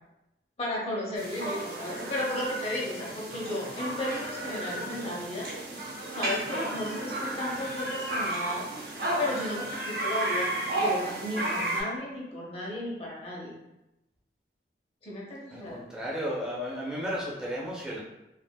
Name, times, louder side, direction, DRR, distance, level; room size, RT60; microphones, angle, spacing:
voice 1, 0.6-5.5 6.1-8.7 9.2-13.5 15.0-15.8, left 1 dB, 35° left, -5 dB, 0.8 m, -34 dB
sound 1, 1.2-11.8, right 1 dB, 60° right, 0.6 m, -33 dB
voice 2, 15.5-18.0, equal, 5° right, -5 dB, 0.5 m, -34 dB
3.3 x 2.5 x 2.2 m, 0.93 s
head